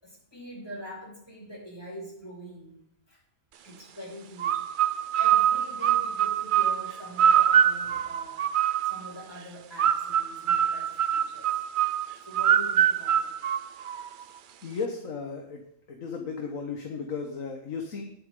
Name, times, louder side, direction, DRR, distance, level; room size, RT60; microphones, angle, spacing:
voice 1, 0.0-3.2 3.6-8.5 8.8-11.6 12.1-13.3, equal, 20° left, -4 dB, 5.9 m, -44 dB
sound 1, 4.4-9.1 9.8-14.2, right 9 dB, 60° right, 0.5 m, -24 dB
voice 2, 14.6-15.6 15.9-18.0, left 5 dB, 85° left, 3 dB, 1.8 m, -35 dB
20.0 x 8.7 x 3.8 m, 0.77 s
omnidirectional pair, 1.4 m